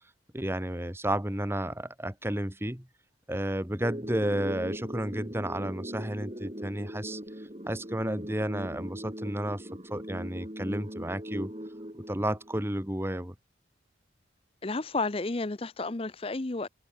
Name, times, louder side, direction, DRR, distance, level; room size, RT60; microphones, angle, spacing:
voice 1, 0.3-2.9 3.3-7.2 7.7-11.5 12.1-13.3, right 1 dB, 15° right, 2.7 m, -32 dB
sound 1, 3.8-12.8, equal, 30° right, 3.3 m, -40 dB
voice 2, 14.6-16.7, left 3 dB, 30° left, 0.7 m, -31 dB
open air
head